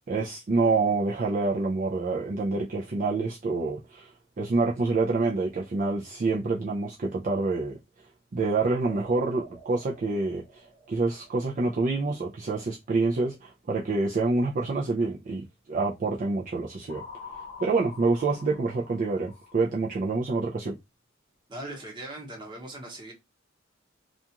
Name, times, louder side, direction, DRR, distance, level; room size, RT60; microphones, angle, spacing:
voice 1, 0.1-4.1 4.4-7.8 8.3-17.0 17.6-20.8, right 3 dB, 40° right, 0.4 m, -27 dB
sound 1, 8.8-12.1 16.9-19.7, left 3 dB, 25° left, 0.8 m, -47 dB
voice 2, 21.5-23.1, right 1 dB, 25° right, 1.0 m, -39 dB
2.4 x 2.3 x 2.8 m
head